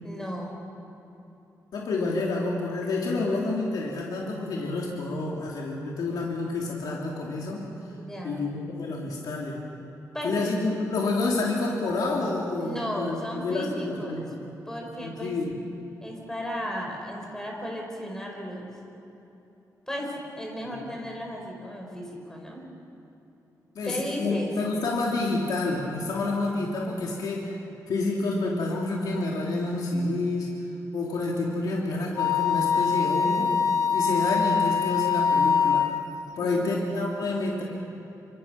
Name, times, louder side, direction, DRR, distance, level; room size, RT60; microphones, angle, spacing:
voice 1, 0.0-0.6 7.9-8.4 10.1-10.5 12.6-14.3 14.7-15.4 16.0-18.7 19.9-22.6 23.8-24.5 36.4-36.8, equal, 10° left, 0 dB, 4.8 m, -35 dB
voice 2, 1.7-7.7 8.2-9.6 10.2-14.5 15.0-15.5 20.6-21.0 23.7-27.5 27.9-30.6 30.9-33.6 33.9-35.9 36.4-37.6, left 2 dB, 80° left, -3 dB, 3.0 m, -29 dB
Wind instrument woodwind instrument, 32.2-36.0, left 6 dB, 60° left, 1.4 m, -23 dB
28.0 x 26.5 x 5.8 m, 2.9 s
wide cardioid pair, 160°, 7 cm